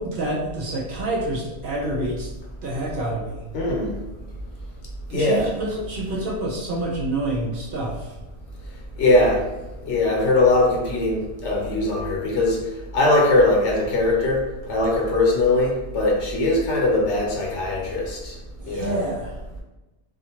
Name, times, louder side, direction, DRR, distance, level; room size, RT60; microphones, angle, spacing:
voice 1, 0.0-2.3 2.6-3.4 5.1-8.1 18.6-19.4, right 1 dB, 60° right, -4 dB, 0.6 m, -27 dB
voice 2, 3.5-3.9 5.1-5.5 9.0-9.4 9.9-12.6 12.9-14.4 14.7-18.3 18.7-19.0, left 2 dB, 75° left, -1 dB, 1.0 m, -20 dB
2.5 x 2.5 x 2.8 m, 1.0 s
omnidirectional pair, 1.2 m